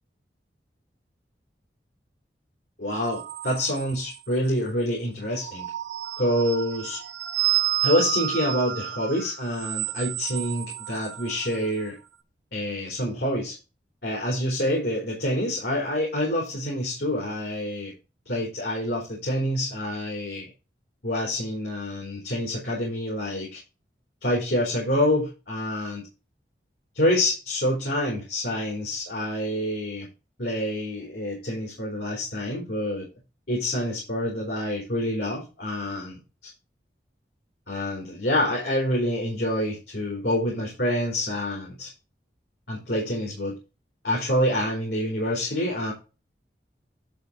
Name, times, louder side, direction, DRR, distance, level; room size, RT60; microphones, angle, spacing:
voice 1, 2.8-5.6 6.2-7.0 7.8-12.0 12.5-13.6 14.0-17.9 18.3-20.5 21.0-23.6 24.2-26.1 26.9-30.1 30.4-33.1 33.5-36.5 37.7-41.9 42.7-43.6 44.0-45.9, left 1 dB, 70° left, -3 dB, 4.4 m, -27 dB
sound 1, 2.9-4.4 5.3-11.9, right 14 dB, 85° right, 1.1 m, -31 dB
12.0 x 4.9 x 4.1 m, 0.29 s
head